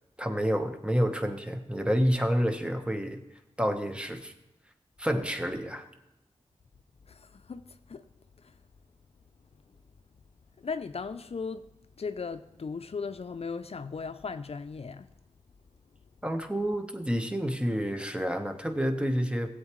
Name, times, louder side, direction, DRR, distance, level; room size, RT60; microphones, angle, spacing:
voice 1, 0.2-3.2 3.6-4.3 5.0-5.9 16.2-19.5, equal, 10° right, 1.2 m, -29 dB
voice 2, 7.0-8.1 8.4-8.6 10.6-11.7 12.0-15.1, left 5 dB, 60° left, 0.5 m, -37 dB
15.5 x 8.1 x 3.1 m
cardioid pair, 40°, 12 cm